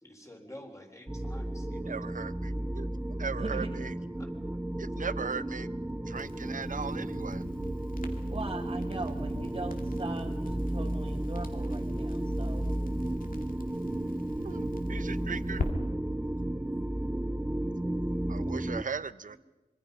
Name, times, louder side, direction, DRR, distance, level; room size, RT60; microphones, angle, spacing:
voice 1, 0.0-1.7 4.2-4.5 19.3-19.4, left 1 dB, 20° left, 3 dB, 4.0 m, -49 dB
sound 1, 1.1-18.8, right 1 dB, 10° right, 0.6 m, -33 dB
voice 2, 1.7-2.9 3.2-3.9 4.8-5.7 6.1-7.4 14.4-15.6 18.3-19.4, right 5 dB, 70° right, 15 dB, 0.7 m, -38 dB
voice 3, 3.4-3.7 8.3-12.7, right 3 dB, 40° right, 1 dB, 1.6 m, -40 dB
Crackle, 6.1-15.7, left 3 dB, 75° left, 2.3 m, -44 dB
25.5 x 23.5 x 5.4 m, 1.2 s
wide cardioid pair, 95°, 14 cm